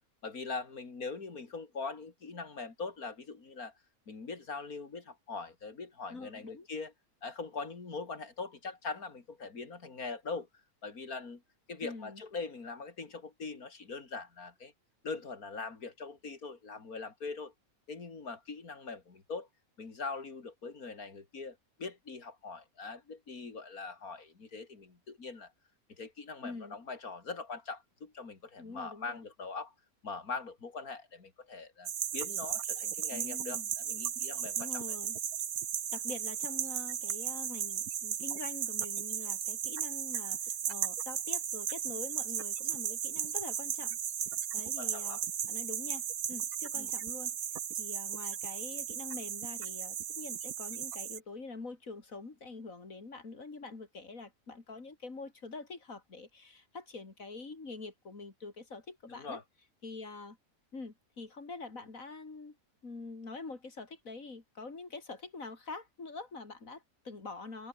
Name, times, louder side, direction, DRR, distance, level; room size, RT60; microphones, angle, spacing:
voice 1, 0.2-3.7 4.1-6.9 7.2-10.5 10.8-11.4 11.7-14.7 15.0-17.5 17.9-19.5 19.8-25.5 26.0-29.7 30.0-35.0 44.8-45.2 46.8-46.9 59.0-59.4, left 4 dB, 80° left, 3.4 m, -42 dB
voice 2, 6.1-6.7 11.8-12.2 26.4-26.8 28.6-29.2 33.1-33.7 34.6-35.2 35.9-44.0 44.5-45.2 45.5-47.4 47.8-59.4 59.8-60.4 60.7-62.6 62.8-67.7, left 3 dB, 65° left, 3.7 m, -45 dB
sound 1, 31.9-51.2, right 9 dB, 85° right, 1.6 m, -36 dB
omnidirectional pair, 1.5 m